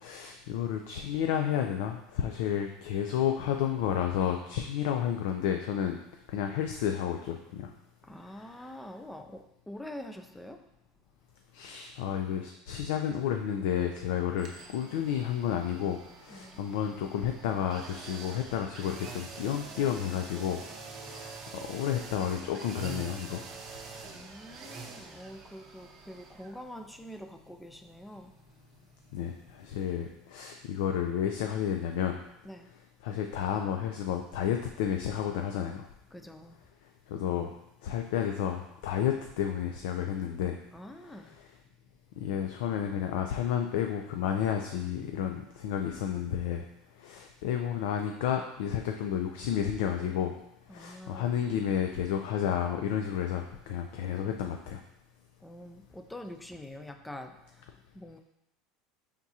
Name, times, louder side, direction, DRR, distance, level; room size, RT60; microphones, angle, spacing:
voice 1, 0.0-6.0 6.3-7.7 11.5-20.6 21.0-21.3 21.7-23.4 29.1-32.2 33.0-35.9 37.1-37.5 37.8-40.6 42.2-46.6 47.0-50.3 50.7-54.8, left 9 dB, 75° left, 4 dB, 0.3 m, -31 dB
voice 2, 8.0-10.7 16.3-16.7 24.0-28.3 32.4-32.7 36.1-36.6 40.7-41.4 50.7-51.5 55.4-58.2, left 1 dB, 5° left, 7 dB, 0.4 m, -45 dB
sound 1, 14.4-30.2 30.5-30.6, right 4 dB, 40° right, 0.7 m, -46 dB
4.7 x 3.5 x 2.8 m, 0.84 s
supercardioid pair, 105°, 0 cm